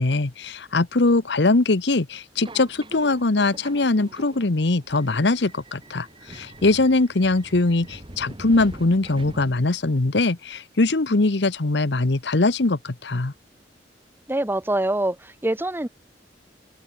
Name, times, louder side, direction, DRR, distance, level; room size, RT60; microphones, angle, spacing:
voice 1, 0.0-13.3, left 2 dB, 70° left, 1.1 m, -21 dB
Subway metro underground, 2.4-9.9, right 1 dB, 30° right, 2.1 m, -43 dB
voice 2, 14.3-15.9, right 1 dB, 10° right, 0.9 m, -24 dB
head